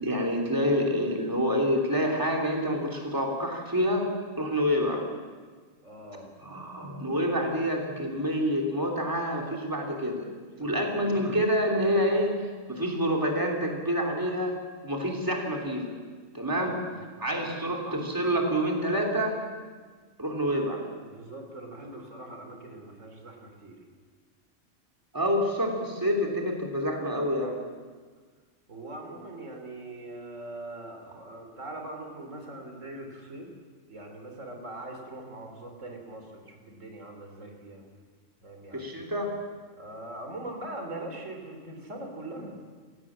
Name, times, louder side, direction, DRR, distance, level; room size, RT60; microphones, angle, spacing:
voice 1, 0.0-4.1 4.4-5.0 6.4-10.3 10.6-14.5 14.8-15.9 16.3-16.8 17.2-19.4 20.2-20.8 25.1-27.6 38.7-39.3, equal, 15° right, 0 dB, 3.2 m, -27 dB
voice 2, 5.8-6.3 10.6-11.4 16.6-17.0 17.3-17.6 21.0-23.8 28.7-33.5 33.9-37.9 38.4-39.0 39.7-42.6, right 1 dB, 85° right, 3 dB, 3.7 m, -42 dB
28.5 x 16.5 x 7.5 m, 1.5 s
omnidirectional pair, 1.3 m